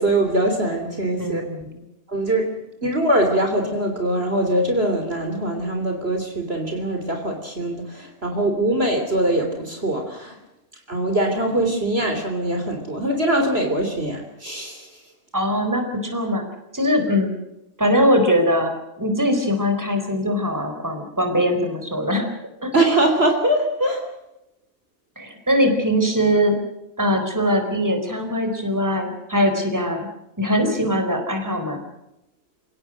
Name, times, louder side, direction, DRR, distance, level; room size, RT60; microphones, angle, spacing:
voice 1, 0.0-1.4 2.1-2.5 2.8-10.4 10.9-14.9 22.7-24.0, right 1 dB, 40° right, 4 dB, 3.7 m, -22 dB
voice 2, 1.2-1.8 15.3-16.4 16.7-17.3 17.8-22.2 22.6-22.7 25.2-26.6 27.0-30.0 30.4-31.8, equal, 10° right, 5 dB, 4.4 m, -21 dB
29.5 x 18.0 x 6.4 m, 0.89 s
omnidirectional pair, 1.5 m